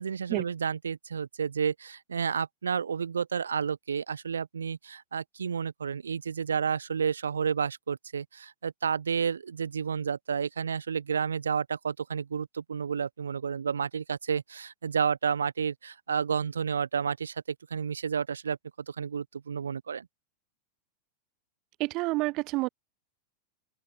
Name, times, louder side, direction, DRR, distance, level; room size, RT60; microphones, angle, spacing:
voice 1, 0.0-17.4 17.7-18.6 18.9-20.1, right 6 dB, 70° right, 2.3 m, -31 dB
voice 2, 21.8-22.7, right 22 dB, 40° right, 0.5 m, -28 dB
open air
figure-of-eight pair, 90°, 0 cm